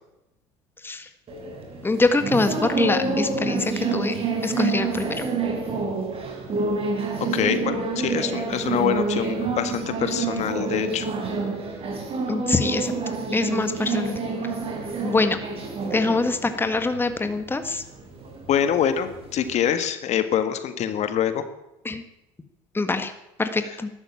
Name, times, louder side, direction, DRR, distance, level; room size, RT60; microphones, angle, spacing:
sound 1, 1.3-19.7, right 4 dB, 40° right, 4.6 m, -28 dB
voice 1, 1.8-4.1 4.4-5.2 12.3-12.9 13.3-14.2 15.0-15.4 15.8-17.8 21.8-22.0 22.7-23.1 23.4-23.9, left 3 dB, 15° left, 9 dB, 1.5 m, -24 dB
voice 2, 7.3-11.1 18.5-21.4, left 9 dB, 55° left, 11 dB, 1.6 m, -25 dB
13.0 x 12.0 x 8.6 m, 0.91 s
supercardioid pair, 85°, 14 cm